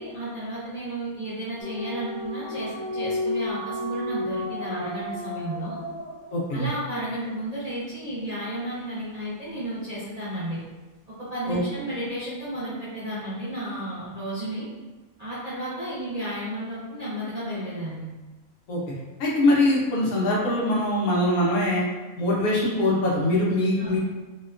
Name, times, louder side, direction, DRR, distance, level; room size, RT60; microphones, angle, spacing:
voice 1, 0.0-5.7 6.5-10.6 11.3-14.7 15.2-18.0 23.8-24.0, right 1 dB, 40° right, -11 dB, 0.6 m, -32 dB
sound 1, 1.6-6.9, left 1 dB, 45° left, 0.9 m, -32 dB
voice 2, 6.3-6.7 11.5-11.6 18.7-18.8 19.2-21.8 22.2-24.0, left 1 dB, 90° left, -4 dB, 1.2 m, -22 dB
2.8 x 2.2 x 2.4 m, 1.2 s
omnidirectional pair, 1.5 m